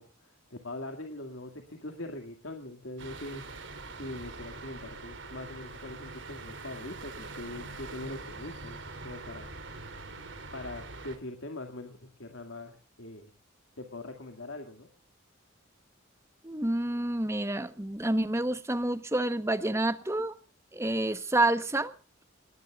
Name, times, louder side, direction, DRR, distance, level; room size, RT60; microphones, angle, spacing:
voice 1, 0.0-3.6 4.0-9.5 10.5-13.3 13.8-14.9, left 2 dB, 80° left, 2.3 m, -42 dB
sound 1, 3.0-11.2, right 3 dB, 65° right, 3.1 m, -43 dB
voice 2, 16.4-20.3 20.7-21.9, right 1 dB, 15° right, 1.0 m, -28 dB
28.0 x 20.5 x 2.4 m
head